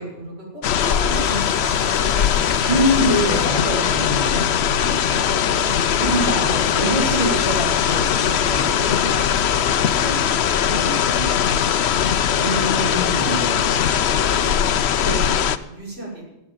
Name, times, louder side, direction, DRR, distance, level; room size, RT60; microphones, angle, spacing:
voice 1, 0.0-2.3 3.3-6.2 8.0-10.2 10.6-12.4 12.7-14.5 15.2-16.3, right 1 dB, 80° right, -5 dB, 6.2 m, -35 dB
sound 1, 0.6-15.6, left 8 dB, 85° left, 1.0 m, -20 dB
sound 2, 0.8-6.1 7.5-7.6, left 1 dB, 5° left, 1.7 m, -36 dB
voice 2, 2.7-4.4 6.0-8.8 12.4-13.4 15.0-15.4, equal, 35° right, -6 dB, 3.7 m, -24 dB
16.0 x 8.2 x 9.1 m, 0.94 s
omnidirectional pair, 1.1 m